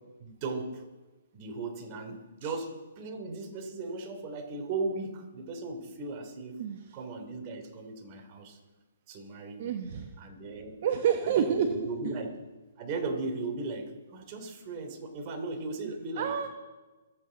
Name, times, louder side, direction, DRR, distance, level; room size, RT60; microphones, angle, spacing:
voice 1, 0.2-0.8 1.3-6.6 6.9-8.6 9.1-9.8 10.2-10.8 11.2-12.3 12.8-16.3, right 3 dB, 35° right, 3 dB, 3.1 m, -37 dB
voice 2, 9.6-10.1 10.8-12.1 16.2-16.5, right 8 dB, 50° right, 5 dB, 1.2 m, -29 dB
27.0 x 9.0 x 4.1 m, 1.2 s
hypercardioid pair, 135°, 0 cm